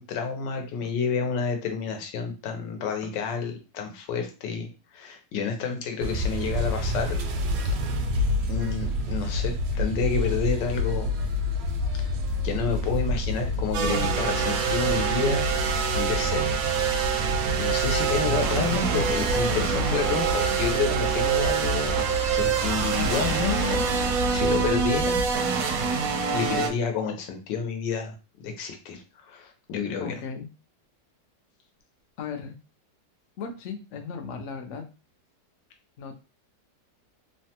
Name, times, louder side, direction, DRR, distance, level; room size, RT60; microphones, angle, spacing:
voice 1, 0.0-7.2 7.6-7.8 8.5-11.1 12.0-12.1 12.4-15.5 15.9-16.4 17.6-21.9 22.3-25.2 26.3-30.2, left 5 dB, 85° left, 4 dB, 1.3 m, -29 dB
sound 1, 6.0-25.3, left 1 dB, 85° right, 1.3 m, -29 dB
sound 2, 13.7-26.7, right 6 dB, 70° right, 0.8 m, -26 dB
voice 2, 18.0-18.7 30.0-30.5 32.2-32.6 33.4-34.8 36.0-36.2, left 5 dB, 70° left, 5 dB, 0.7 m, -37 dB
3.2 x 2.1 x 2.8 m, 0.31 s
omnidirectional pair, 1.9 m